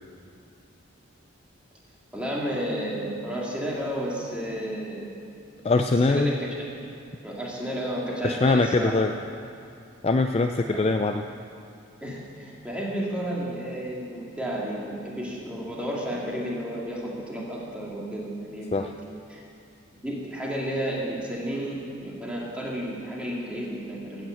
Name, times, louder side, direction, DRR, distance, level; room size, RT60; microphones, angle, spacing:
voice 1, 2.1-5.1 6.1-6.8 7.2-9.0 10.7-10.8 12.0-18.9 19.3-19.4 20.0-24.3, equal, 5° right, -4 dB, 2.3 m, -32 dB
voice 2, 5.6-6.3 8.2-9.1 10.0-11.2 18.7-18.9, left 3 dB, 30° left, 5 dB, 0.4 m, -22 dB
14.0 x 9.1 x 7.8 m, 2.5 s
head